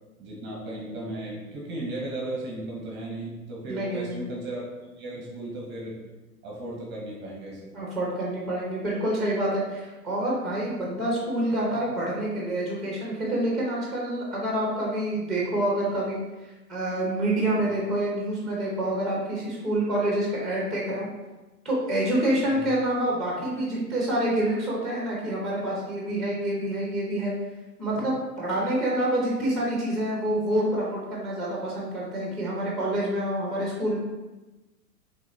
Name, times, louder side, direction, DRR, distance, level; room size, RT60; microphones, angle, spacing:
voice 1, 0.2-6.0 6.4-7.7 22.5-22.7, right 1 dB, 20° right, -3 dB, 1.0 m, -36 dB
voice 2, 3.7-4.3 7.7-16.2 16.7-21.1 21.6-27.3 27.8-34.0, right 1 dB, ahead, -4 dB, 0.9 m, -27 dB
4.7 x 3.4 x 2.8 m, 1.1 s
hypercardioid pair, 110°, 48 cm